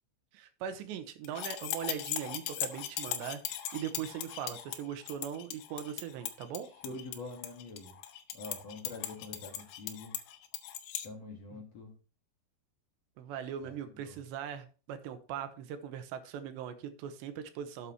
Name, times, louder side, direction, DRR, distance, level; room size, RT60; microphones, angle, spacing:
voice 1, 0.3-3.4 3.7-6.7 11.5-11.6 13.2-17.9, right 9 dB, 80° right, 9 dB, 3.2 m, -40 dB
sound 1, 1.3-11.1, left 11 dB, 85° left, 3.4 m, -39 dB
voice 2, 6.8-7.9 8.3-10.1 11.0-11.9 13.6-14.2, left 3 dB, 45° left, 0 dB, 2.6 m, -45 dB
12.0 x 8.5 x 3.0 m, 0.35 s
omnidirectional pair, 5.1 m